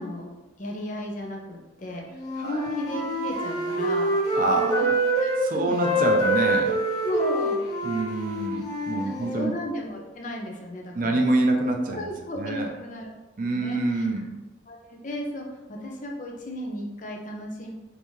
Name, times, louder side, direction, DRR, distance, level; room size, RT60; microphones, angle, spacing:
voice 1, 0.0-4.1 4.6-4.9 5.2-5.7 7.0-7.6 9.0-11.2 11.9-13.1 13.4-14.1 14.7-17.7, left 1 dB, 40° left, 0 dB, 0.6 m, -35 dB
Wind instrument woodwind instrument, 2.1-5.4 5.7-9.5, right 1 dB, 20° left, 0.9 m, -26 dB
voice 2, 4.3-4.8 5.4-6.8 7.8-9.5 10.9-12.1 12.4-12.7 13.4-14.3, right 2 dB, 45° right, 2 dB, 0.5 m, -26 dB
5.3 x 2.7 x 3.1 m, 1.1 s
head